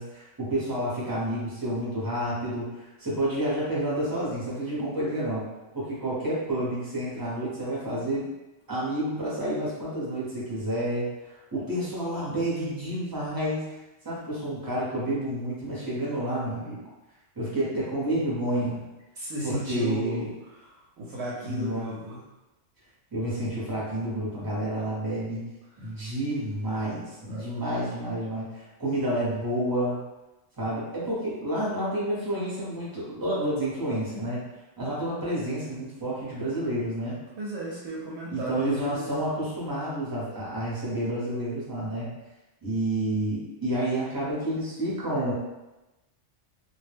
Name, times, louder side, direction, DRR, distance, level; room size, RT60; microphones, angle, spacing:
voice 1, 0.0-5.4 5.7-8.3 8.7-13.6 14.0-16.8 17.3-18.8 19.4-20.3 21.4-21.9 23.1-25.4 25.8-30.0 30.6-34.4 34.8-37.1 38.3-42.1 42.6-45.3, right 1 dB, 20° right, -7 dB, 0.7 m, -29 dB
voice 2, 19.2-20.3 20.6-22.2 25.8-25.9 27.3-27.5 37.4-39.1, right 1 dB, 65° right, -5 dB, 0.8 m, -34 dB
2.2 x 2.1 x 3.2 m, 1.0 s
omnidirectional pair, 1.3 m